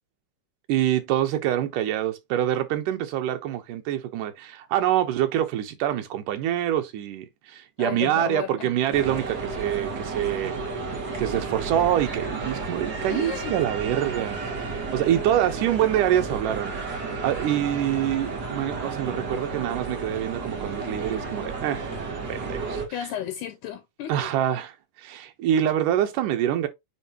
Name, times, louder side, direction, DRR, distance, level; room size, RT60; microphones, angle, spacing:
voice 1, 0.7-10.6 10.9-21.9 22.3-22.8 24.1-24.7 25.0-26.7, right 11 dB, 80° right, 2.6 m, -26 dB
voice 2, 7.8-9.0 13.1-13.5 22.9-24.3, left 10 dB, 75° left, 2.1 m, -34 dB
sound 1, 8.9-22.9, right 4 dB, 40° right, 1.8 m, -32 dB
8.9 x 3.7 x 2.9 m
omnidirectional pair, 3.7 m